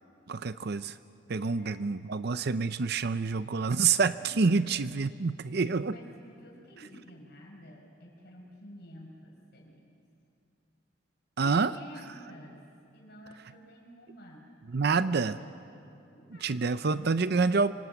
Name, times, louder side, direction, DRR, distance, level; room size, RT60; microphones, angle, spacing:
voice 1, 0.3-1.0 1.3-5.9 11.4-11.7 14.7-15.3 16.4-17.7, right 4 dB, 55° right, 13 dB, 0.6 m, -27 dB
voice 2, 1.6-1.9 3.8-4.6 5.2-5.3 5.8-9.9 11.4-12.6 12.9-14.5 14.9-15.6 16.1-17.0, equal, 60° left, 1 dB, 5.9 m, -50 dB
27.0 x 24.5 x 8.3 m, 2.7 s
head